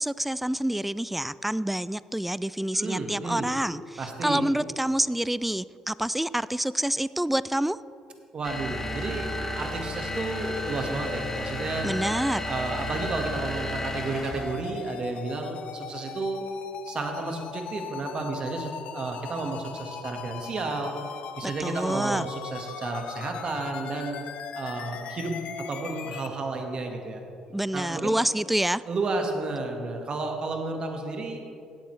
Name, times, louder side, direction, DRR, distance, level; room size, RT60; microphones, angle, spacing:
voice 1, 0.0-7.8 11.8-12.4 21.6-22.3 27.5-28.8, right 1 dB, 5° right, 18 dB, 0.3 m, -27 dB
voice 2, 2.7-3.5 4.0-4.4 8.3-9.3 9.5-11.9 12.4-16.4 16.8-20.9 21.4-24.2 24.5-25.3 25.7-27.2 27.7-28.2 28.9-31.4, right 3 dB, 45° right, 3 dB, 1.5 m, -32 dB
sound 1, 8.4-14.6, left 1 dB, 15° left, 2.1 m, -33 dB
sound 2, 9.7-26.3, left 7 dB, 65° left, 0.6 m, -40 dB
16.0 x 8.9 x 3.2 m, 2.4 s
supercardioid pair, 65°, 2 cm